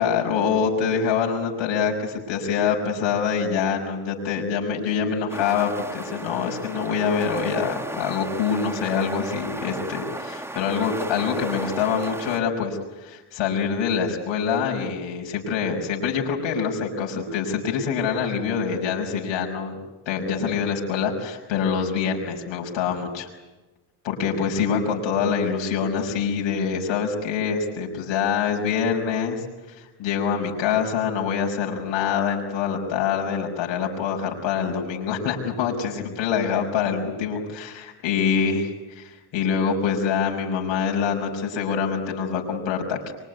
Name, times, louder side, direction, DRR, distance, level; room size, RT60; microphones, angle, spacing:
voice 1, 0.0-19.8 20.1-23.3 24.0-43.1, left 6 dB, 65° left, 0 dB, 6.0 m, -25 dB
sound 1, 5.3-12.4, right 1 dB, 5° right, 1.9 m, -34 dB
25.0 x 24.0 x 9.5 m, 1.1 s
supercardioid pair, 100°, 49 cm